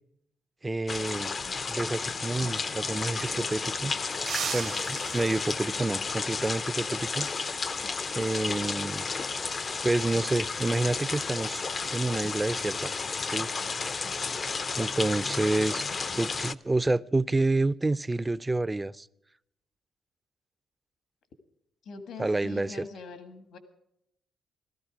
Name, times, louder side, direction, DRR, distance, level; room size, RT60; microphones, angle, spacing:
voice 1, 0.6-1.3 1.7-3.9 4.5-7.3 8.1-9.0 9.8-12.9 13.3-13.5 14.8-15.8 16.2-19.1 22.2-22.8, right 2 dB, 15° right, 0.4 m, -28 dB
sound 1, 0.9-16.5, left 4 dB, 40° left, 0.5 m, -32 dB
sound 2, 2.6-2.7 2.9-3.8 4.2-6.0 8.4-8.7 10.1-10.6, right 7 dB, 60° right, 0.9 m, -39 dB
voice 2, 7.8-8.3 21.8-23.6, left 4 dB, 75° left, 1.7 m, -44 dB
15.5 x 13.5 x 4.9 m
cardioid pair, 90°, 0 cm